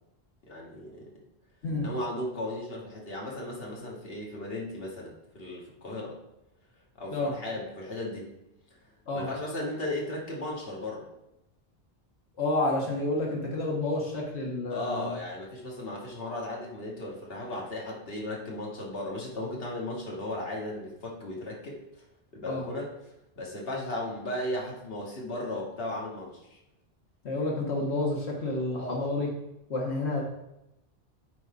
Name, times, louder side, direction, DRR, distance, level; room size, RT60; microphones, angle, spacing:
voice 1, 0.4-1.1 1.8-6.2 7.0-8.3 9.1-11.1 14.7-21.8 22.3-22.9 23.4-26.6 28.7-29.1, left 1 dB, 65° left, -3 dB, 1.8 m, -36 dB
voice 2, 12.4-15.2 22.5-22.6 27.2-29.3 29.7-30.2, left 2 dB, 90° left, -2 dB, 1.7 m, -29 dB
10.5 x 4.1 x 4.7 m, 0.88 s
omnidirectional pair, 1.1 m